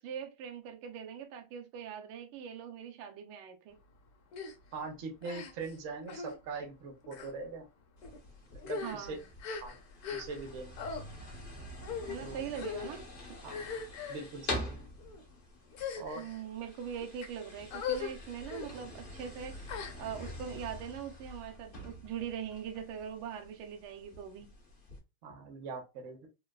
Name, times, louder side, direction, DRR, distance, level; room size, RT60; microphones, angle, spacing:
voice 1, 0.0-3.8 8.8-9.2 12.1-13.1 16.1-24.5, right 8 dB, 85° right, 1.6 m, -42 dB
sound 1, 4.3-4.5 5.2-5.8 6.1-6.4 7.0-7.3 8.0-8.2 8.6-10.5 10.8-11.0 11.8-12.2 12.5-12.9 13.5-14.3 15.0-15.2 15.7-16.4 17.0-17.3 17.7-18.1 18.4-18.7 19.7-20.3, left 6 dB, 65° left, 0.9 m, -40 dB
voice 2, 4.7-7.6 8.6-9.2 9.6-9.8 10.1-10.7 12.2-12.4 13.4-13.6 14.1-14.9 16.0-16.2 25.2-26.3, right 4 dB, 60° right, 0.7 m, -42 dB
sound 2, 8.0-25.0, left 1 dB, 85° left, 0.4 m, -46 dB
3.8 x 2.2 x 2.2 m
omnidirectional pair, 2.4 m